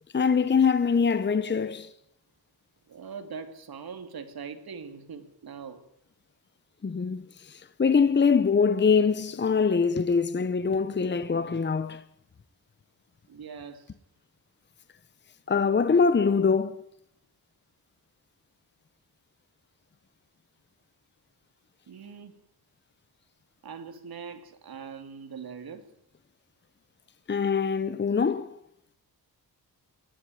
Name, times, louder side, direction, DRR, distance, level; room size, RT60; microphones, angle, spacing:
voice 1, 0.1-1.9 6.8-12.0 15.5-16.8 27.3-28.6, left 5 dB, 30° left, 1.0 m, -23 dB
voice 2, 2.9-5.8 13.3-13.9 21.9-22.3 23.6-25.8, right 6 dB, 65° right, 2.9 m, -41 dB
21.5 x 14.0 x 9.4 m
cardioid pair, 105°, 39 cm